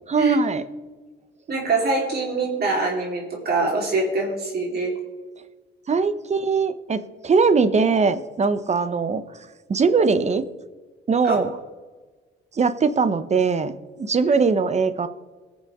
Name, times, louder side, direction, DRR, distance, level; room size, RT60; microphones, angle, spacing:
voice 1, 0.1-0.6 5.9-9.2 9.7-10.4 11.1-11.6 12.6-15.1, right 5 dB, 35° right, 12 dB, 1.0 m, -21 dB
voice 2, 1.5-5.0 11.2-11.4, right 3 dB, 55° right, -2 dB, 4.0 m, -23 dB
21.0 x 7.2 x 3.7 m, 1.3 s
cardioid pair, 90°, 20 cm